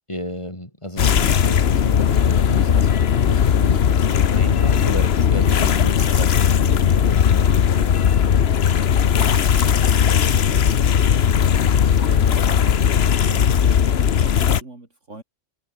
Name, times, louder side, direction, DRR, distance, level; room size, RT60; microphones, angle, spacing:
voice 1, 0.1-7.7, left 1 dB, 25° left, 4.8 m, -33 dB
sound 1, 1.0-14.6, left 8 dB, 55° left, 1.1 m, -17 dB
voice 2, 8.3-11.4 12.0-15.2, right 2 dB, 70° right, 4.7 m, -42 dB
omnidirectional pair, 1.3 m